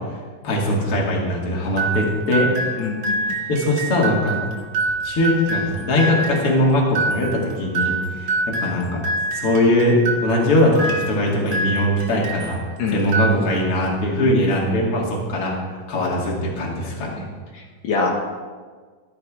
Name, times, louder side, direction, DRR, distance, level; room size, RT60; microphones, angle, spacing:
voice 1, 0.4-2.5 3.5-4.4 5.0-12.6 12.9-15.5 15.9-17.3, left 1 dB, 45° left, -2 dB, 3.2 m, -21 dB
sound 1, 1.8-12.6 13.0-13.9, right 2 dB, 55° right, 2.3 m, -26 dB
voice 2, 2.8-3.2 12.8-13.2 17.5-18.1, left 4 dB, 75° left, -2 dB, 3.1 m, -25 dB
14.5 x 10.5 x 5.0 m, 1.5 s
omnidirectional pair, 3.9 m